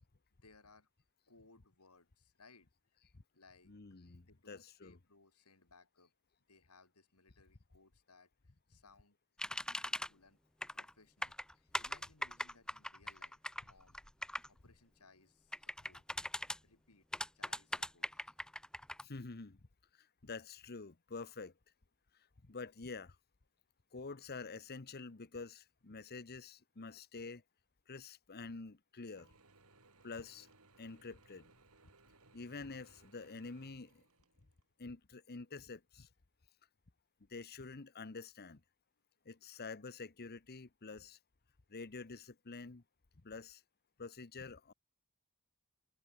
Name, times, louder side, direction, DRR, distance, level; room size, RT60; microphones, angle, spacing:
voice 1, 0.3-0.9 1.3-3.0 3.3-3.7 4.2-6.1 6.5-9.2 9.5-10.4 10.7-14.0 14.5-16.0 16.6-17.1 17.3-18.3, left 3 dB, 85° left, 4.7 m, -65 dB
voice 2, 3.7-5.0 19.0-19.6 20.0-21.5 22.4-23.2 23.9-27.4 27.9-29.3 30.0-30.5 30.8-31.5 32.3-34.0 34.8-36.1 37.3-38.6 39.2-41.2 41.7-42.8 43.2-43.6 44.0-44.7, left 4 dB, 45° left, 1.0 m, -48 dB
sound 1, 9.4-10.1 10.6-10.9 11.2-14.5 15.5-16.6 17.1-19.0, left 1 dB, 5° left, 0.7 m, -40 dB
Mechanisms / Drill, 29.2-34.7, right 3 dB, 70° right, 6.9 m, -66 dB
head